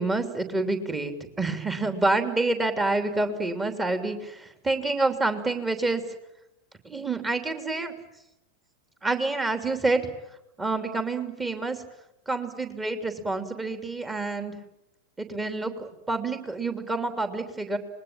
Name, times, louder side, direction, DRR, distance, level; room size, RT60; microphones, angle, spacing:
voice 1, 0.0-6.0 6.8-7.9 9.0-10.1 10.6-11.8 12.3-14.6 15.2-17.8, right 2 dB, 15° right, 7 dB, 3.1 m, -28 dB
26.5 x 21.0 x 8.9 m, 0.87 s
figure-of-eight pair, 90°, 0 cm